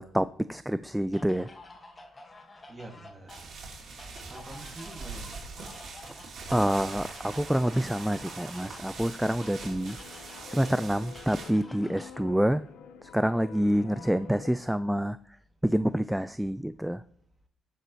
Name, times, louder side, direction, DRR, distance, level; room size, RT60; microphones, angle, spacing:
voice 1, 0.0-1.5 6.5-10.0 10.5-12.6 13.0-15.2 15.6-17.0, equal, 5° right, 14 dB, 0.3 m, -27 dB
sound 1, 1.1-12.2, left 2 dB, 25° left, 1.8 m, -50 dB
voice 2, 2.7-3.4 4.3-5.4 13.9-14.6, right 2 dB, 20° right, 1 dB, 2.5 m, -46 dB
sound 2, 3.3-11.5, right 4 dB, 65° right, 3.3 m, -43 dB
sound 3, 9.4-14.5, left 8 dB, 90° left, 0.9 m, -48 dB
18.5 x 6.7 x 3.2 m, 0.64 s
cardioid pair, 90°, 0 cm